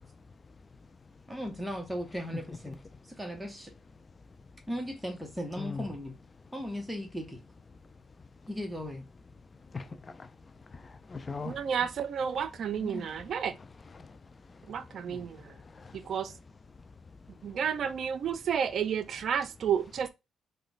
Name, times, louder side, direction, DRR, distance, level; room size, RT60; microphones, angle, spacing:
voice 1, 1.3-3.7 4.7-6.2 6.5-7.4 8.5-9.0 12.8-13.1 15.1-15.3, equal, 5° right, 0.8 m, -37 dB
voice 2, 9.7-10.3 10.7-11.6 13.9-14.2 15.7-16.0, left 4 dB, 30° left, 0.4 m, -40 dB
voice 3, 11.5-13.5 14.7-15.4 16.1-16.3 17.4-20.1, right 7 dB, 60° right, 0.4 m, -31 dB
2.9 x 2.2 x 3.9 m
cardioid pair, 90°, 0 cm